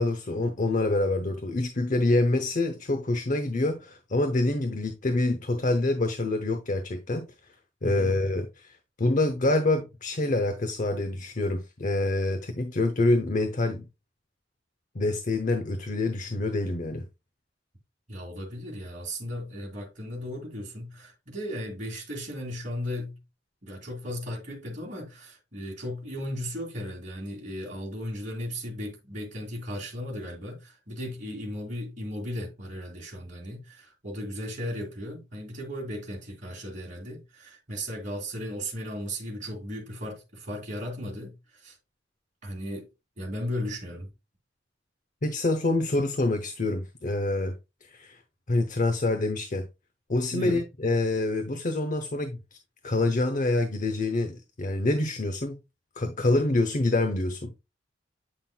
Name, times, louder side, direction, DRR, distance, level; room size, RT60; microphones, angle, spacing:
voice 1, 0.0-7.3 7.8-13.9 14.9-17.1 45.2-47.5 47.8-48.2 48.5-49.6 50.1-52.6 52.8-55.6 56.0-57.5, left 2 dB, 45° left, 0.8 m, -26 dB
voice 2, 7.8-8.2 18.1-23.2 23.6-41.8 42.4-42.9 43.2-44.1 50.3-50.6, equal, 40° right, 2.4 m, -36 dB
8.8 x 5.7 x 2.2 m
head